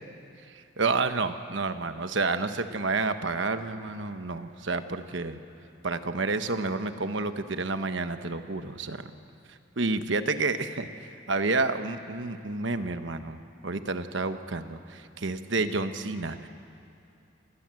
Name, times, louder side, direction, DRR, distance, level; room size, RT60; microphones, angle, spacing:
voice 1, 0.5-5.4 5.8-9.0 9.8-10.9 11.3-16.5, right 3 dB, 60° right, 9 dB, 1.1 m, -30 dB
28.0 x 20.0 x 7.7 m, 2.6 s
head